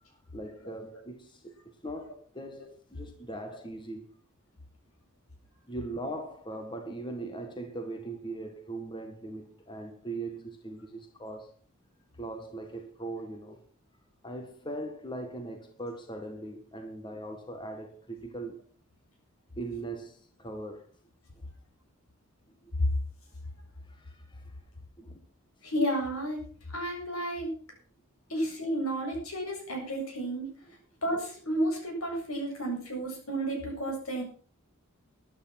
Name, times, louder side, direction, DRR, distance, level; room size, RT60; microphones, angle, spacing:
voice 1, 0.3-4.2 5.7-11.6 12.2-13.6 14.2-18.6 19.6-20.9 22.6-22.7 23.8-24.5 25.0-25.2, right 2 dB, 20° left, 1.7 m, -40 dB
voice 2, 25.6-27.5 28.3-30.5 31.0-34.2, right 1 dB, 80° left, 7.8 m, -32 dB
13.5 x 11.5 x 6.0 m
head